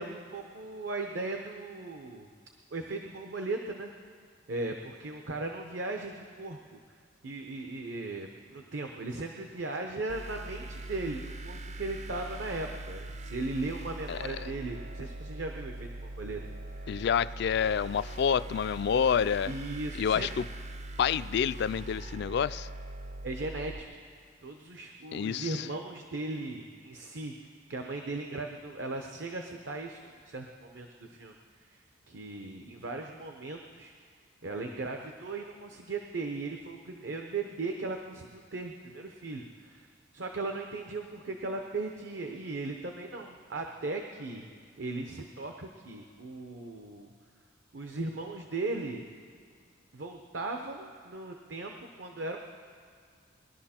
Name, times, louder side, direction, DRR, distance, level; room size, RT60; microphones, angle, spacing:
voice 1, 0.0-2.3 2.7-3.9 4.5-6.8 7.2-16.4 19.5-20.3 23.2-23.9 24.4-27.3 27.7-33.9 34.4-44.5 44.8-47.1 47.7-49.0 49.9-52.4, right 2 dB, 65° right, 3 dB, 0.8 m, -37 dB
sound 1, 10.1-23.8, right 1 dB, 35° right, 0.5 m, -42 dB
voice 2, 14.1-14.5 16.9-19.5 20.0-20.4 21.0-22.7 25.1-25.7, left 7 dB, 60° left, 16 dB, 0.3 m, -28 dB
20.5 x 11.5 x 4.4 m, 2.1 s
head